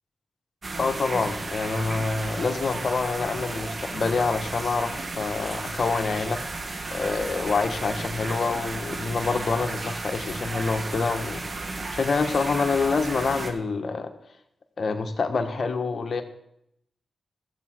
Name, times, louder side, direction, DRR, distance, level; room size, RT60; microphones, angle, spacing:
sound 1, 0.6-13.5, right 3 dB, 50° right, 1.7 m, -34 dB
voice 1, 0.8-6.4 6.9-11.4 11.9-14.1 14.8-16.2, left 4 dB, 60° left, 6 dB, 1.5 m, -26 dB
15.0 x 7.3 x 6.3 m, 0.77 s
cardioid pair, 55°, 0 cm